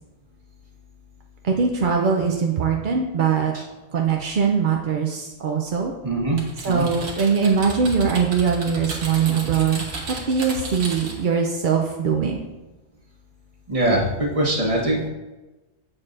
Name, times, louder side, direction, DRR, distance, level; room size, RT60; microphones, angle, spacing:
voice 1, 1.4-3.5 3.9-5.9 6.6-9.9 10.3-12.4, right 6 dB, 60° right, 1 dB, 0.5 m, -21 dB
voice 2, 6.0-6.4 6.6-6.9 13.7-15.1, right 1 dB, 25° right, -3 dB, 1.2 m, -22 dB
Typing, 6.4-11.3, right 3 dB, 90° right, 1.5 m, -33 dB
7.4 x 6.5 x 2.5 m, 1.1 s
omnidirectional pair, 1.4 m